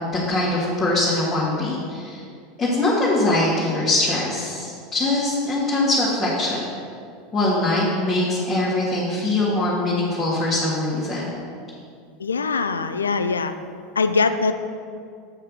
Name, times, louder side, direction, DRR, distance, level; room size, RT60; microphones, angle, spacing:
voice 1, 0.3-2.2 2.6-6.6 7.3-11.2, left 2 dB, 20° left, -9 dB, 1.9 m, -22 dB
voice 2, 12.2-13.5 14.0-14.5, left 4 dB, 75° left, 10 dB, 0.4 m, -22 dB
8.1 x 5.4 x 5.1 m, 2.3 s
figure-of-eight pair, 80°, 0 cm